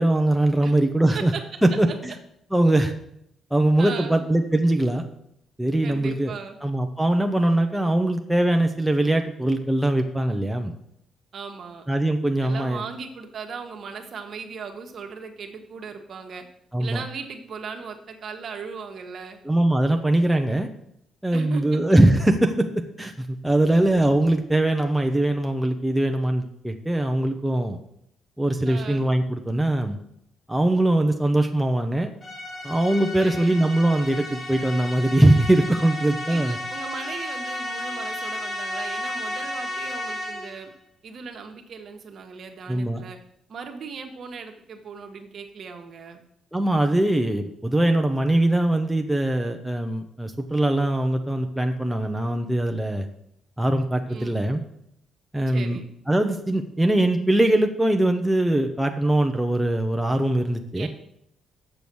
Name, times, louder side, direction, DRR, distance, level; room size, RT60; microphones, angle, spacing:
voice 1, 0.0-1.3 1.6-2.1 2.5-2.9 3.5-5.0 5.6-6.3 6.6-10.7 11.9-12.8 16.7-17.0 19.4-20.7 21.2-27.8 28.4-30.0 30.5-32.1 32.6-36.6 42.7-43.0 46.5-53.1 53.6-54.6 55.3-55.8 56.1-60.9, right 1 dB, 5° right, 4 dB, 0.8 m, -21 dB
voice 2, 3.8-4.2 5.8-6.6 11.3-11.9 12.4-16.4 16.8-19.4 21.3-21.8 28.6-29.1 33.2-33.6 36.3-40.7 41.0-43.2 43.5-46.2 54.1-54.4 55.5-55.9 60.7-60.9, right 5 dB, 55° right, 4 dB, 1.4 m, -37 dB
sound 1, 32.2-40.7, left 1 dB, 30° left, 2.7 m, -33 dB
7.0 x 6.9 x 6.2 m, 0.75 s
cardioid pair, 90°, 0 cm